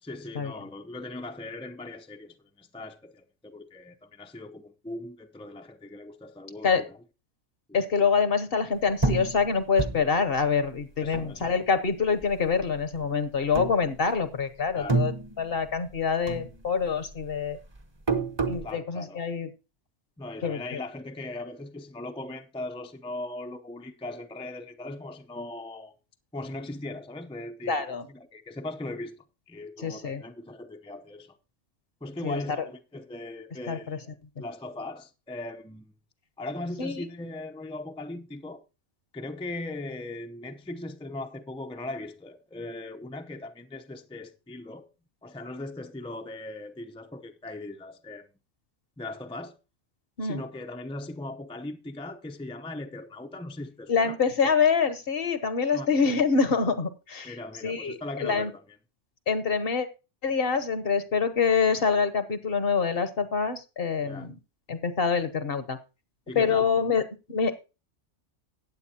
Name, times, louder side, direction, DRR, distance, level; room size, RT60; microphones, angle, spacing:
voice 1, 0.0-6.9 11.0-11.4 14.7-15.0 18.6-19.2 20.2-25.9 26.3-31.4 32.0-35.9 36.4-38.6 39.1-44.9 45.2-48.3 49.0-49.6 50.2-54.2 55.7-55.9 57.2-58.6 64.0-64.3 66.3-66.9, left 2 dB, 5° left, 0.5 m, -39 dB
voice 2, 7.7-15.1 15.4-17.6 18.5-19.5 20.4-20.8 27.6-28.1 29.8-30.2 32.2-32.4 33.7-34.0 36.8-37.0 50.2-50.4 53.9-57.4 57.6-58.5 59.3-59.9 60.2-64.4 64.7-65.8 66.3-67.0 67.3-67.7, left 5 dB, 55° left, 1.1 m, -26 dB
sound 1, 9.0-11.9 12.2-13.0 13.5-14.4 14.7-16.0 16.3-18.7, right 3 dB, 25° right, 0.9 m, -30 dB
15.0 x 9.2 x 2.8 m
omnidirectional pair, 1.2 m